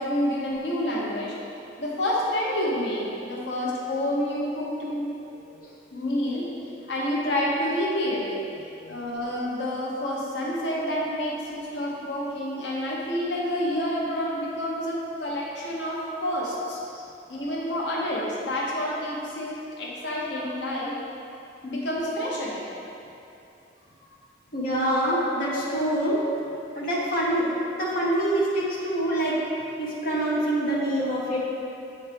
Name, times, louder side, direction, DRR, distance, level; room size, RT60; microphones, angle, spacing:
voice 1, 0.0-1.4 1.8-5.1 5.9-6.5 6.9-8.3 8.9-16.8 17.3-20.9 21.6-22.6 24.9-25.1 30.0-30.1, left 1 dB, 75° left, -4 dB, 0.9 m, -28 dB
voice 2, 8.7-9.0 16.9-17.0 24.5-26.2 26.8-29.4 29.8-31.4, right 1 dB, 50° left, -6 dB, 0.9 m, -26 dB
7.8 x 4.3 x 3.4 m, 2.7 s
head